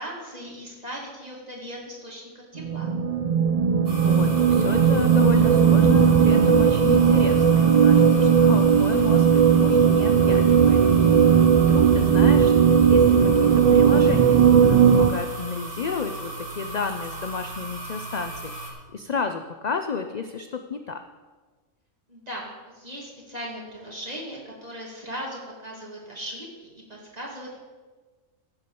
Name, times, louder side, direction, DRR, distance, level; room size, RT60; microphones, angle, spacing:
voice 1, 0.0-2.9 22.1-27.6, equal, 30° right, -3 dB, 2.8 m, -38 dB
sound 1, 2.6-15.1, right 7 dB, 80° right, 0.3 m, -17 dB
sound 2, 3.9-18.7, right 2 dB, 45° right, 2.2 m, -36 dB
voice 2, 4.0-21.0, left 6 dB, 55° left, 7 dB, 0.5 m, -32 dB
15.5 x 5.3 x 6.8 m, 1.4 s
omnidirectional pair, 1.4 m